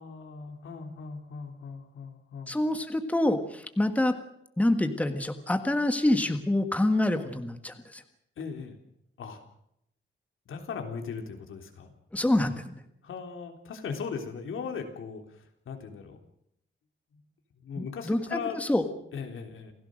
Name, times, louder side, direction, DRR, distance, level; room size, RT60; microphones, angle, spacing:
voice 1, 0.0-2.6 8.4-8.8 9.2-9.4 10.5-11.9 13.0-16.2 17.6-18.6 19.1-19.7, left 6 dB, 90° left, 4 dB, 3.5 m, -38 dB
voice 2, 2.5-4.1 4.6-8.0 12.1-12.7 17.8-18.9, left 1 dB, 5° left, 7 dB, 1.6 m, -26 dB
28.5 x 16.5 x 6.4 m, 0.76 s
wide cardioid pair, 170°, 20 cm